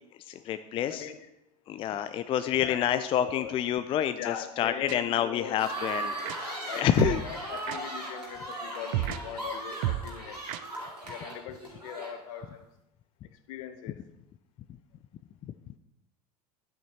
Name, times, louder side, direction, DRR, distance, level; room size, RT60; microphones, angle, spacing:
voice 1, 0.3-1.1 1.7-6.2 6.4-7.2, left 10 dB, 25° left, 11 dB, 0.4 m, -28 dB
voice 2, 0.9-1.3 1.9-2.0 2.6-3.6 4.2-5.6 6.6-10.4 11.1-12.6 13.5-14.0, left 9 dB, 55° left, 10 dB, 0.9 m, -40 dB
sound 1, 4.9-5.0 6.3-6.4 7.0-7.2 7.7-7.8 8.9-9.2 9.8-10.1 10.5-10.6, right 15 dB, 50° right, 0.5 m, -29 dB
sound 2, 5.6-12.5, right 1 dB, 90° right, 2.4 m, -38 dB
12.5 x 9.2 x 2.9 m, 0.85 s
figure-of-eight pair, 75°, 20 cm